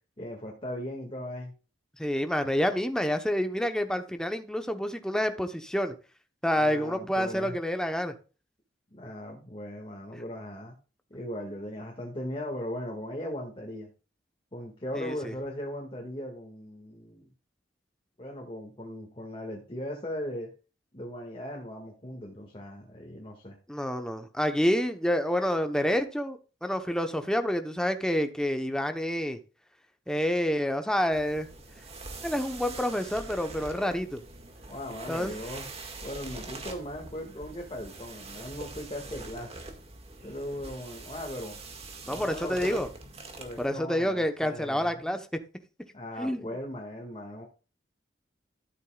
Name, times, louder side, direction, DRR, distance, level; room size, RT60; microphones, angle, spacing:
voice 1, 0.2-1.5 6.6-7.6 8.9-10.7 11.1-13.9 14.5-17.3 18.2-20.5 20.9-23.6 34.7-35.6 36.0-39.6 40.2-41.6 42.1-42.8 43.4-45.2 45.9-47.5, left 1 dB, 30° left, 0 dB, 1.9 m, -38 dB
voice 2, 2.0-5.9 6.4-8.1 14.9-15.3 23.7-29.4 30.1-31.5 32.2-34.2 35.1-35.3 42.1-42.9 43.6-45.2 46.2-46.5, equal, 5° left, 7 dB, 0.9 m, -28 dB
sound 1, 31.1-43.7, right 3 dB, 35° right, 1.8 m, -44 dB
13.0 x 8.3 x 2.4 m, 0.33 s
head